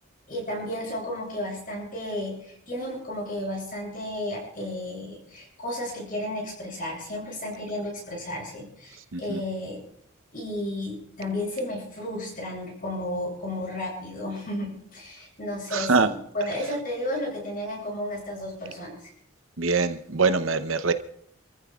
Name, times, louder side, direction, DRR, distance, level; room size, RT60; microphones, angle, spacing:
voice 1, 0.3-9.8 10.3-19.0, left 1 dB, 45° left, -1 dB, 7.6 m, -33 dB
voice 2, 15.7-16.1 19.6-20.9, right 4 dB, 75° right, 9 dB, 0.8 m, -23 dB
28.0 x 14.5 x 2.4 m, 0.68 s
head